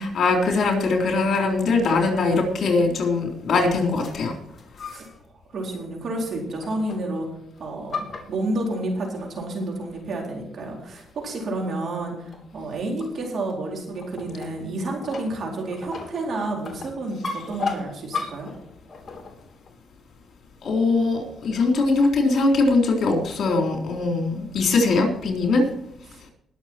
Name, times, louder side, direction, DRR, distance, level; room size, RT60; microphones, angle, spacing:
voice 1, 0.0-4.3 20.6-25.7, left 3 dB, 60° left, 2 dB, 3.7 m, -21 dB
sound 1, 4.0-5.2 5.6-5.9 6.6-7.2 7.6-8.9 9.6-9.7 10.2-10.3 10.9-11.2 11.5-11.7 12.3-19.7, left 4 dB, 35° left, 3.1 m, -36 dB
voice 2, 5.5-7.3 7.6-18.5 26.1-26.2, right 2 dB, 55° right, 0 dB, 4.1 m, -30 dB
20.5 x 7.0 x 4.4 m, 0.73 s
cardioid pair, 90°, 0 cm